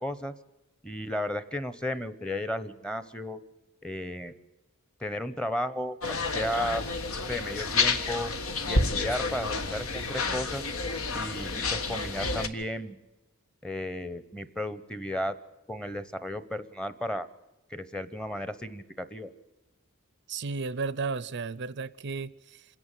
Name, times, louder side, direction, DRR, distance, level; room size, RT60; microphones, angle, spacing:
voice 1, 0.0-0.3 0.8-3.4 3.8-4.3 5.0-6.8 7.3-8.3 8.7-10.7 11.1-13.0 13.6-15.4 15.7-17.3 17.7-19.3, left 1 dB, 5° left, 0.9 m, -34 dB
sound 1, 6.0-12.5, left 3 dB, 75° left, 1.7 m, -30 dB
voice 2, 20.3-22.6, right 4 dB, 55° right, 0.6 m, -34 dB
27.0 x 11.0 x 9.1 m
head